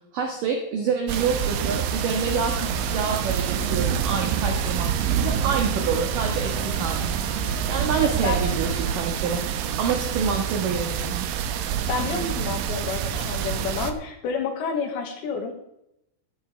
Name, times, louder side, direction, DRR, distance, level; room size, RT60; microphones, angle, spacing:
voice 1, 0.1-7.1 7.7-9.4 9.8-11.3, right 5 dB, 60° right, 2 dB, 2.5 m, -27 dB
sound 1, 1.1-13.9, right 8 dB, 75° right, 3.3 m, -27 dB
sound 2, 1.2-8.9, right 2 dB, 25° right, 2.4 m, -41 dB
voice 2, 11.9-15.6, left 5 dB, 70° left, 3 dB, 3.9 m, -29 dB
15.5 x 12.0 x 3.4 m, 0.81 s
omnidirectional pair, 5.7 m